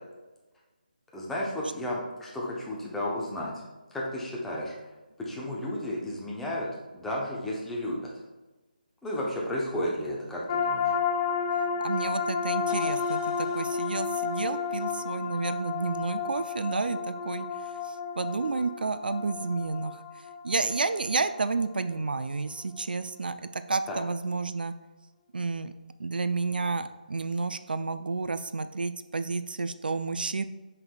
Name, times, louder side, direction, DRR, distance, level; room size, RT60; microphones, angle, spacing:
voice 1, 1.1-3.6 3.9-4.7 5.2-6.7 6.9-8.1 9.0-10.9 23.9-24.0, left 1 dB, 5° left, -5 dB, 0.8 m, -33 dB
sound 1, 10.5-21.9, left 6 dB, 25° left, 0.4 m, -31 dB
voice 2, 11.8-17.5 17.8-20.0 20.4-24.8 25.3-25.7 26.0-30.4, right 4 dB, 75° right, 11 dB, 0.4 m, -30 dB
7.1 x 5.6 x 2.3 m, 1.1 s
figure-of-eight pair, 160°, 5 cm